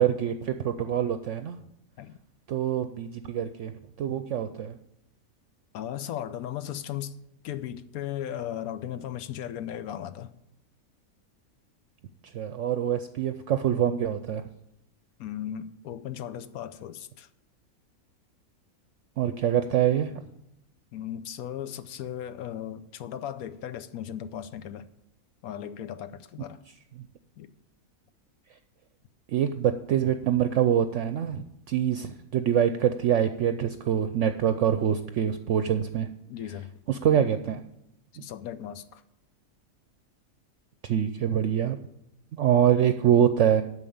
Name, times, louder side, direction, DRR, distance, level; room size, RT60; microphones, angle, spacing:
voice 1, 0.0-1.6 2.5-3.7 4.0-4.8 12.3-14.4 19.2-20.2 29.3-36.1 36.9-37.6 40.8-41.8 42.3-43.6, right 9 dB, 65° right, 0.8 m, -25 dB
voice 2, 5.7-10.3 15.2-17.3 20.9-24.9 25.4-26.6 27.4-27.5 36.3-36.7 38.2-39.0, left 10 dB, 80° left, 1.1 m, -36 dB
8.9 x 6.4 x 8.6 m
omnidirectional pair, 1.5 m